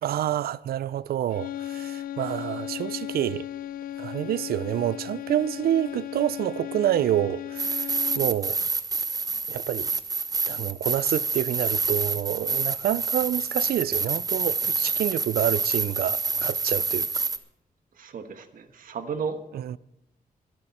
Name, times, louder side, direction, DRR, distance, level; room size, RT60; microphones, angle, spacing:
voice 1, 0.0-3.5 4.0-7.7 8.2-8.6 9.5-9.9 10.5-17.1 19.6-19.8, right 12 dB, 80° right, 0.4 m, -27 dB
sound 1, 1.3-8.4, left 12 dB, 70° left, 0.5 m, -36 dB
sound 2, 7.6-17.4, right 4 dB, 25° right, 0.7 m, -27 dB
voice 2, 17.9-19.4, right 6 dB, 65° right, 1.4 m, -33 dB
21.5 x 8.9 x 4.3 m
wide cardioid pair, 155°, 15 cm